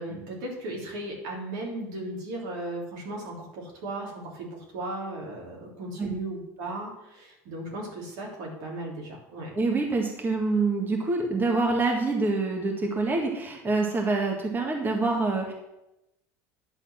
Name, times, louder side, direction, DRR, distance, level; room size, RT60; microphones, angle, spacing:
voice 1, 0.0-9.5, right 1 dB, 80° right, -2 dB, 3.5 m, -36 dB
voice 2, 9.6-15.5, right 3 dB, 25° right, 1 dB, 1.8 m, -26 dB
10.5 x 4.1 x 7.4 m, 0.90 s
supercardioid pair, 95°, 8 cm